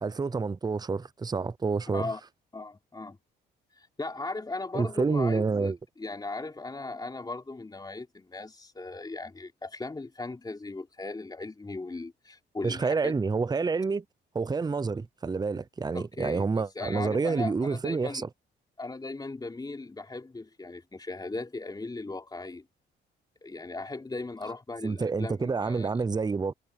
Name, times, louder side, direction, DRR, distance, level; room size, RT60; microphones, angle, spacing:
voice 1, 0.0-2.1 4.7-5.8 12.6-14.0 14.3-18.3 24.8-26.5, right 4 dB, 20° right, 0.7 m, -28 dB
voice 2, 2.5-3.2 3.8-13.1 15.9-18.3 18.8-22.7 23.4-25.9, left 3 dB, 20° left, 3.5 m, -38 dB
cardioid pair, 90°, 20 cm